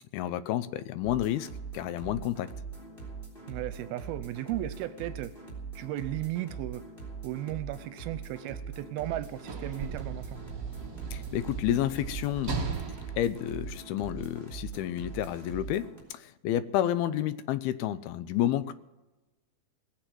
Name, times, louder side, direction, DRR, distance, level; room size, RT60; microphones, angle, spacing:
voice 1, 0.1-1.5 1.7-2.5 11.1-12.5 13.2-18.7, left 12 dB, 90° left, 14 dB, 2.7 m, -30 dB
sound 1, 1.0-16.0, right 5 dB, 15° left, 3.6 m, -42 dB
voice 2, 3.5-5.3 5.8-6.8 7.2-10.4, right 14 dB, 85° right, 12 dB, 2.5 m, -35 dB
Sliding door / Slam, 9.0-14.4 15.3-15.5, right 5 dB, 50° right, 1.1 m, -38 dB
18.5 x 9.1 x 7.8 m, 1.1 s
omnidirectional pair, 4.3 m